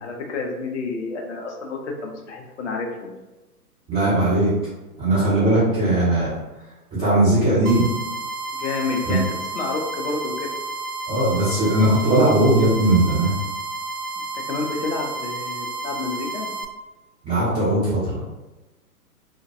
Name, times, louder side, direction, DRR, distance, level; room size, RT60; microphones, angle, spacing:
voice 1, 0.0-3.1 8.5-9.2 9.5-10.5 14.2-16.5, left 4 dB, 50° left, 1 dB, 0.6 m, -29 dB
voice 2, 3.9-4.5 5.0-6.3 6.9-7.9 9.0-9.2 11.1-13.3 17.2-18.2, right 1 dB, 5° right, -15 dB, 0.3 m, -19 dB
sound 1, 7.7-16.7, right 3 dB, 75° right, 0.5 m, -31 dB
2.4 x 2.2 x 2.6 m, 1.1 s
figure-of-eight pair, 125°, 46 cm